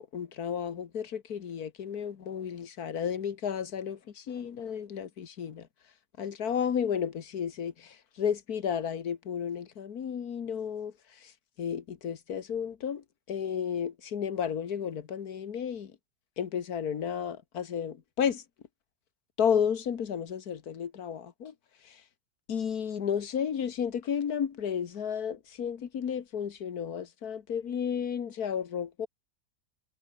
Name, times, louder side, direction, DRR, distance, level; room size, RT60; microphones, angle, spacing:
voice 1, 0.0-5.7 6.2-11.3 11.6-15.9 16.4-18.4 19.4-21.5 21.8-22.0 22.5-29.1, left 8 dB, 80° left, 1.9 m, -32 dB
omnidirectional pair, 1.6 m